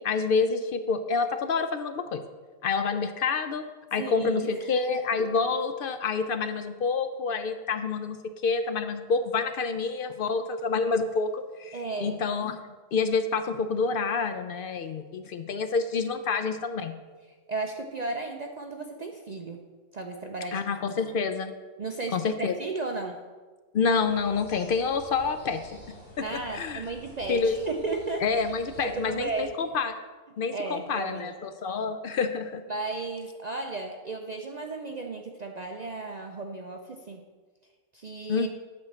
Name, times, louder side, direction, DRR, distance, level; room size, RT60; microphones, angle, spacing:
voice 1, 0.0-2.2 2.6-3.7 3.9-8.2 8.4-16.9 20.5-21.5 22.1-22.5 23.7-25.8 26.2-26.8 27.3-27.6 28.2-29.9 30.4-32.6 38.3-38.5, left 4 dB, 65° left, 9 dB, 0.5 m, -28 dB
voice 2, 4.0-4.6 5.2-5.3 11.7-12.2 17.5-19.7 19.9-20.6 21.8-23.2 26.2-28.4 28.8-29.6 30.5-31.3 32.7-37.3 37.9-38.5, right 3 dB, 55° right, 3 dB, 0.4 m, -34 dB
sound 1, 24.0-29.5, equal, 5° left, 2.8 m, -49 dB
8.4 x 4.5 x 7.3 m, 1.4 s
omnidirectional pair, 1.4 m